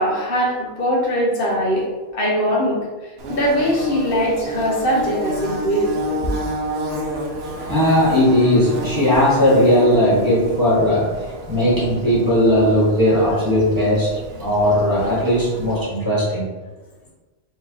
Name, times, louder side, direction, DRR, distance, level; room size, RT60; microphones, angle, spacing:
voice 1, 0.0-2.8 3.3-5.9 6.2-6.3, equal, 50° left, -3 dB, 1.1 m, -21 dB
Bird / Buzz, 3.2-15.8, right 1 dB, 60° right, 0.9 m, -30 dB
voice 2, 7.6-11.2 11.5-14.1 14.4-16.5, left 1 dB, 15° right, -8 dB, 1.3 m, -17 dB
4.8 x 3.1 x 2.8 m, 1.2 s
omnidirectional pair, 1.3 m